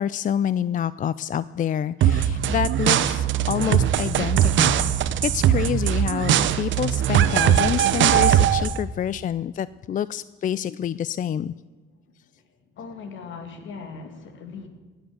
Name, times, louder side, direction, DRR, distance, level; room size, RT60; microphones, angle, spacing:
voice 1, 0.0-4.9 5.2-11.5, left 9 dB, 40° left, 18 dB, 0.4 m, -27 dB
sound 1, 2.0-8.8, right 10 dB, 70° right, 0.8 m, -20 dB
voice 2, 12.7-14.7, left 5 dB, 75° left, 6 dB, 2.4 m, -39 dB
20.0 x 8.2 x 7.8 m, 1.3 s
cardioid pair, 90°, 20 cm